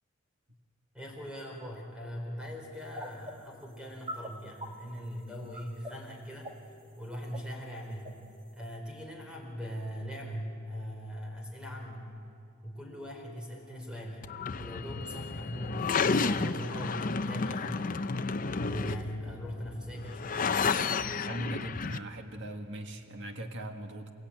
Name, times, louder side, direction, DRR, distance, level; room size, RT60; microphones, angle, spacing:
voice 1, 0.9-6.5 7.0-8.1 8.5-12.1 12.6-14.3 14.6-18.1 18.6-20.5, equal, 5° right, 0 dB, 4.5 m, -40 dB
sound 1, 2.9-3.3 3.6-3.7 4.1-4.3 4.6-5.1 5.5-5.9 6.3-6.9 7.1-7.5 8.0-8.1 8.6-8.7, equal, 25° right, 1.6 m, -40 dB
sound 2, 14.2-22.0, left 4 dB, 40° left, 0.6 m, -32 dB
voice 2, 21.3-24.1, right 1 dB, 60° right, 5 dB, 1.7 m, -39 dB
28.5 x 16.5 x 9.0 m, 2.6 s
head